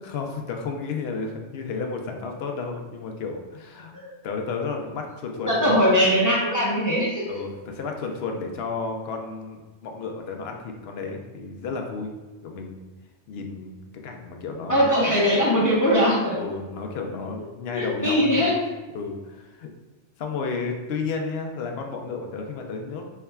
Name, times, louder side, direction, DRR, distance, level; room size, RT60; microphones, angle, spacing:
voice 1, 0.0-3.9 4.2-5.7 7.3-12.1 12.4-12.9 13.3-13.8 14.0-14.9 16.3-18.5 18.9-19.7 20.2-23.0, left 4 dB, 65° left, 3 dB, 0.8 m, -32 dB
voice 2, 5.5-7.3 14.7-16.4 17.7-18.5, equal, 20° left, -5 dB, 0.6 m, -21 dB
4.6 x 3.2 x 2.3 m, 1.3 s
omnidirectional pair, 1.2 m